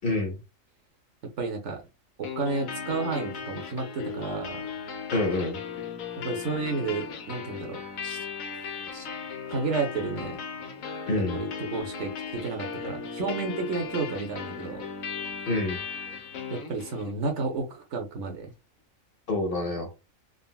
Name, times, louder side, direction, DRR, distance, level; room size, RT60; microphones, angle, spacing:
voice 1, 0.0-0.4 5.1-5.6 8.0-8.2 8.9-9.0 11.1-11.4 15.5-15.8 19.3-19.9, left 2 dB, 50° left, 0.9 m, -27 dB
voice 2, 1.4-1.8 2.2-4.6 6.2-7.8 9.5-10.4 11.3-14.8 16.5-18.5, right 4 dB, 65° right, 1.0 m, -31 dB
sound 1, 2.2-17.2, left 6 dB, 80° left, 1.1 m, -37 dB
3.8 x 2.1 x 2.2 m
omnidirectional pair, 1.4 m